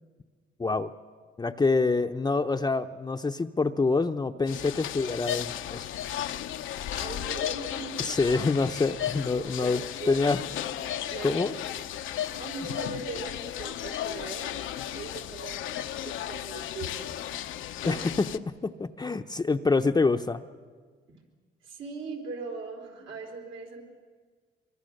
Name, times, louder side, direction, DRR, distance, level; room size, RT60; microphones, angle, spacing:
voice 1, 0.6-0.9 1.4-5.9 8.0-9.8 10.1-10.4 11.2-11.5 17.9-18.3 18.6-20.4, left 3 dB, 20° left, 5 dB, 0.7 m, -26 dB
sound 1, 4.5-18.4, left 11 dB, 80° left, 0.8 m, -34 dB
voice 2, 6.9-7.9 9.4-10.2 10.7-11.7 12.4-14.5 14.9-15.7 16.0-17.2 17.8-18.1 21.1-21.2 21.6-23.8, right 4 dB, 75° right, 1 dB, 3.9 m, -40 dB
24.5 x 23.5 x 6.5 m, 1.6 s
cardioid pair, 90°, 20 cm